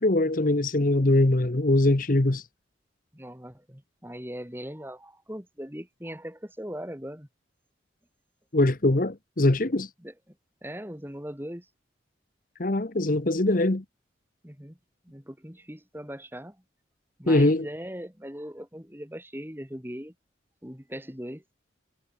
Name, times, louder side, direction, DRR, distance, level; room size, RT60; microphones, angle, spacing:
voice 1, 0.0-2.4 8.5-9.9 12.6-13.8 17.3-17.7, left 2 dB, 45° left, 1.0 m, -22 dB
voice 2, 3.1-7.3 10.0-10.1 10.6-11.7 14.4-14.8 15.0-16.6 17.2-20.1 20.6-21.4, equal, 10° right, 3.4 m, -39 dB
head